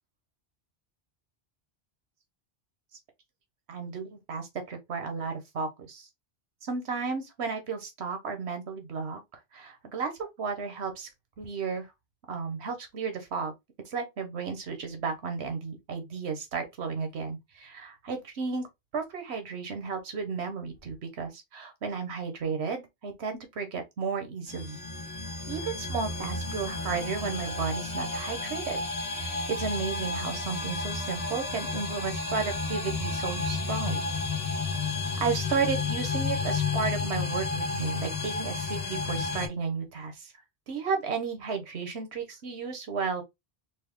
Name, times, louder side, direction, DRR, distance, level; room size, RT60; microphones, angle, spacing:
voice 1, 3.7-6.1 6.6-9.2 9.5-10.1 10.4-11.1 11.4-11.9 12.3-13.5 13.8-18.7 18.9-24.8 25.5-28.8 29.1-34.1 35.2-40.3 40.7-43.2, right 5 dB, 85° right, 1.2 m, -33 dB
sound 1, 24.5-39.5, left 4 dB, 70° left, 1.5 m, -32 dB
4.0 x 2.3 x 3.5 m
omnidirectional pair, 1.1 m